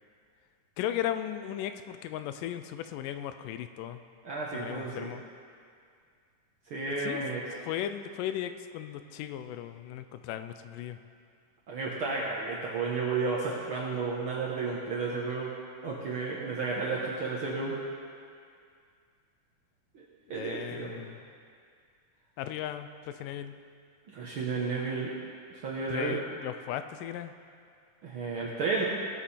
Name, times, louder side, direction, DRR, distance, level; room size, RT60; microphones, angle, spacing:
voice 1, 0.8-4.0 4.5-5.2 7.0-7.2 7.6-11.0 20.3-21.2 22.4-22.9 23.2-23.6 25.9-27.3, left 11 dB, 90° left, 9 dB, 2.2 m, -36 dB
voice 2, 4.2-5.1 6.7-7.4 11.7-15.5 15.8-17.7 19.9-20.0 20.3-21.0 24.1-25.1 25.5-26.2 28.0-28.8, right 4 dB, 60° right, -5 dB, 1.4 m, -32 dB
17.5 x 7.4 x 4.2 m, 2.3 s
omnidirectional pair, 3.8 m